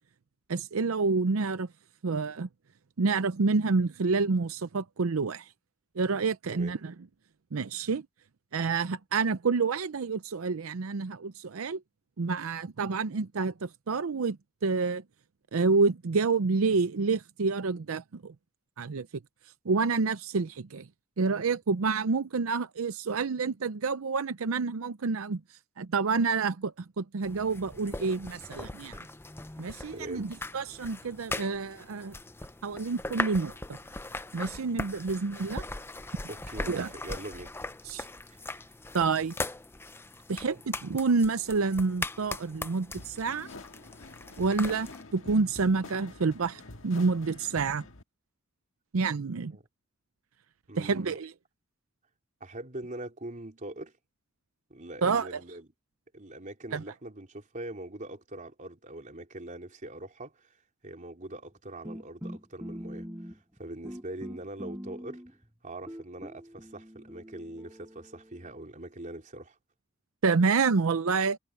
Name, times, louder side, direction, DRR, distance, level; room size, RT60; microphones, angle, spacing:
voice 1, 0.5-1.7 2.0-2.5 3.0-5.5 6.0-6.9 7.5-8.0 8.5-11.8 12.2-14.4 14.6-15.0 15.5-18.3 18.8-19.1 19.7-20.9 21.2-25.4 25.8-29.0 29.6-32.1 32.6-33.5 34.3-35.6 36.7-36.9 37.8-38.0 38.9-39.3 40.3-43.5 44.4-47.8 48.9-49.5 50.8-51.3 55.0-55.4 56.7-56.8 70.2-71.4, right 4 dB, 85° right, 0.6 m, -28 dB
sound 1, 27.2-45.0, left 2 dB, 10° left, 0.6 m, -40 dB
voice 2, 29.9-30.3 36.3-37.5 38.3-38.7 49.5-49.6 50.7-51.2 52.4-53.9 54.7-55.7 56.1-60.5 60.8-65.2 65.6-69.6, right 1 dB, 40° right, 3.6 m, -42 dB
sound 2, 43.0-48.0, left 2 dB, 70° left, 1.7 m, -47 dB
sound 3, 61.8-63.6 63.8-65.4 65.9-68.5, equal, 15° right, 4.4 m, -43 dB
head